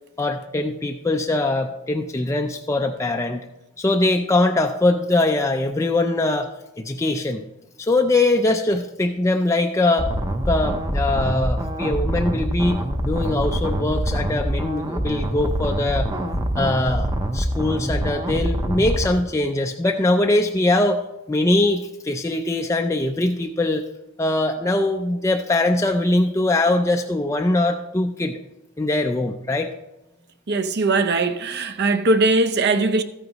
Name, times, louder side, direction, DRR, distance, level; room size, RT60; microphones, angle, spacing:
voice 1, 0.2-3.5 3.8-6.5 6.8-7.4 7.8-10.1 10.5-16.1 16.6-17.1 17.3-23.9 24.2-28.4 28.8-29.7, left 2 dB, 15° left, 0.4 m, -22 dB
sound 1, 10.0-19.1, right 1 dB, 15° right, 0.7 m, -25 dB
voice 2, 30.5-33.0, right 2 dB, 50° right, 0.6 m, -20 dB
13.5 x 9.2 x 3.0 m
head